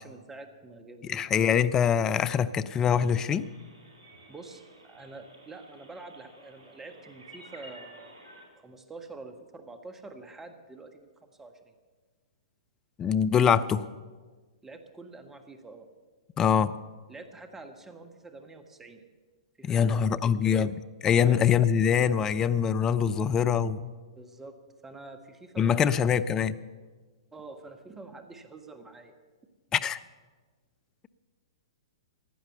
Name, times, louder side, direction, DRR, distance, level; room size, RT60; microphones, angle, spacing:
voice 1, 0.0-1.2 4.3-8.1 8.6-11.7 14.6-15.9 17.1-19.0 19.6-20.6 21.3-21.5 24.1-24.5 24.8-26.3 27.3-29.2, right 3 dB, 10° right, 6 dB, 1.4 m, -46 dB
voice 2, 1.1-3.5 13.0-13.9 16.4-16.8 19.6-20.7 21.0-23.9 25.6-26.6 29.7-30.0, left 7 dB, 20° left, 14 dB, 0.5 m, -24 dB
sound 1, 3.0-8.5, right 1 dB, 65° right, 3.8 m, -52 dB
15.5 x 10.5 x 6.8 m, 1.4 s
figure-of-eight pair, 110°, 3 cm